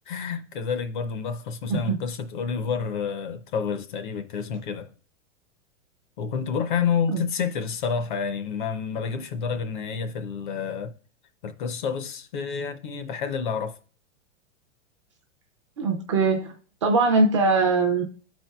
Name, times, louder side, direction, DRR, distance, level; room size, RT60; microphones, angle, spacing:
voice 1, 0.1-4.9 6.2-10.9 11.4-13.8, left 6 dB, 40° left, 0.5 m, -29 dB
voice 2, 15.8-16.5 16.8-18.0, right 3 dB, 25° right, 0.4 m, -21 dB
11.5 x 4.4 x 2.2 m
supercardioid pair, 170°, 37 cm